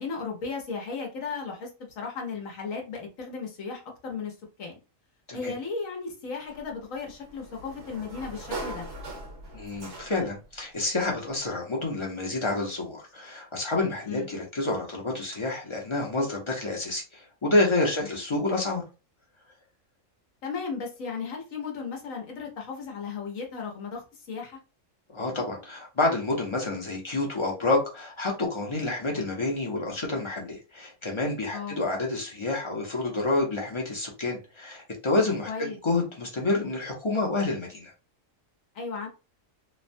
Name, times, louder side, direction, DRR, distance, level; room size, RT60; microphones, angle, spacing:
voice 1, 0.0-1.7 2.0-4.8 5.3-8.9 14.1-14.3 18.1-18.2 20.4-24.6 31.5-31.8 35.5-35.8 38.7-39.1, left 5 dB, 85° left, 1.3 m, -35 dB
Sliding door, 6.5-10.4, right 2 dB, 65° right, 1.2 m, -40 dB
voice 2, 9.5-18.8 25.1-37.9, left 2 dB, 30° left, 0.6 m, -28 dB
3.2 x 2.1 x 2.6 m
omnidirectional pair, 1.3 m